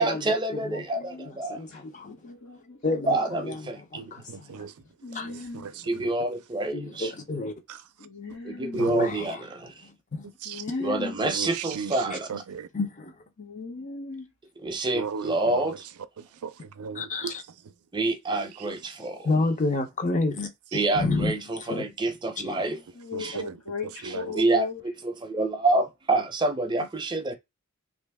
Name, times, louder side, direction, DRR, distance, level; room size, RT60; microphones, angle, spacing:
voice 1, 0.0-1.6 3.1-3.8 5.8-7.1 8.4-9.9 10.8-12.3 14.6-15.8 17.9-19.3 20.7-22.8 23.2-23.4 24.0-27.4, right 2 dB, 20° right, 0.6 m, -27 dB
voice 2, 0.9-1.3 2.0-2.8 5.0-5.7 8.0-8.9 10.4-11.2 13.4-14.3 23.0-24.8, left 4 dB, 80° left, 1.4 m, -36 dB
voice 3, 1.5-2.1 2.8-3.2 3.4-3.5 3.9-4.2 4.5-4.6 5.1-5.4 6.7-7.5 8.8-9.1 10.1-10.3 12.7-13.1 17.0-17.3 19.2-20.5 20.9-21.4 21.7-21.8 22.4-22.5, left 3 dB, 35° left, 0.6 m, -28 dB
voice 4, 4.0-6.1 7.7-8.1 8.7-8.9 10.2-10.7 11.2-12.7 14.9-15.8 16.2-17.7 20.7-20.8 23.1-24.4 26.8-26.9, right 6 dB, 90° right, 0.4 m, -38 dB
2.9 x 2.6 x 3.4 m
head